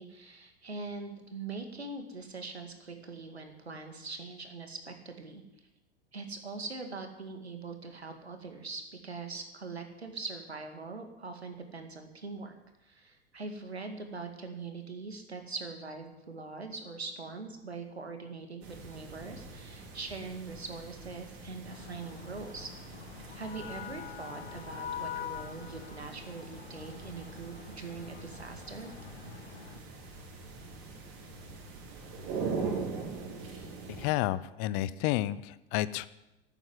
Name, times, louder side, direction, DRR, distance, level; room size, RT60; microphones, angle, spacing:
voice 1, 0.0-5.4 6.1-12.5 12.8-22.7 23.3-28.9, right 4 dB, 85° right, 5 dB, 2.1 m, -42 dB
sound 1, 18.6-34.1, right 4 dB, 55° right, 4.9 m, -42 dB
sound 2, 21.7-29.8, left 9 dB, 75° left, 1.3 m, -45 dB
voice 2, 33.9-36.1, left 15 dB, 45° left, 17 dB, 0.7 m, -31 dB
12.0 x 9.0 x 9.8 m, 0.91 s
figure-of-eight pair, 85°, 31 cm